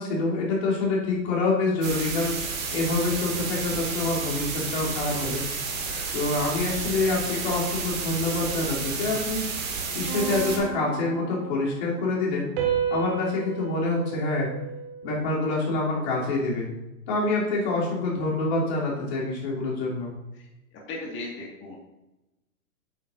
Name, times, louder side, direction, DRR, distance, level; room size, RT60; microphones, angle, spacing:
voice 1, 0.0-2.4 2.7-5.4 6.1-9.5 9.9-12.5 12.9-14.5 15.0-16.7 17.1-20.1, left 2 dB, 45° left, -4 dB, 3.0 m, -26 dB
sound 1, 1.8-10.6, right 5 dB, 60° right, 2.2 m, -31 dB
sound 2, 10.1-11.8 12.6-15.2, right 8 dB, 40° right, 1.9 m, -32 dB
voice 2, 20.9-21.8, left 2 dB, 25° left, -2 dB, 1.8 m, -37 dB
8.8 x 7.7 x 2.6 m, 0.97 s
hypercardioid pair, 120°, 43 cm